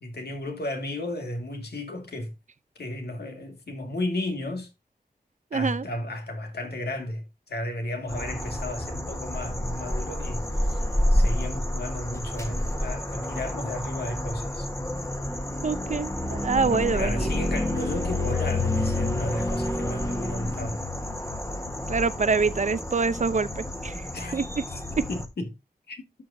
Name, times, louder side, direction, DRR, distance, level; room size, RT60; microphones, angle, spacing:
voice 1, 0.0-2.3 2.8-4.7 5.5-10.8 11.1-14.7 16.6-20.8 24.1-24.4 24.7-24.8 25.1-25.5 25.9-26.0, left 1 dB, 85° left, 2.0 m, -33 dB
voice 2, 5.5-5.9 15.6-17.3 21.9-24.6 25.0-25.1, right 4 dB, 50° right, 0.6 m, -26 dB
sound 1, 8.1-25.3, left 1 dB, 20° left, 1.3 m, -29 dB
12.0 x 6.1 x 2.7 m
wide cardioid pair, 95°, 16 cm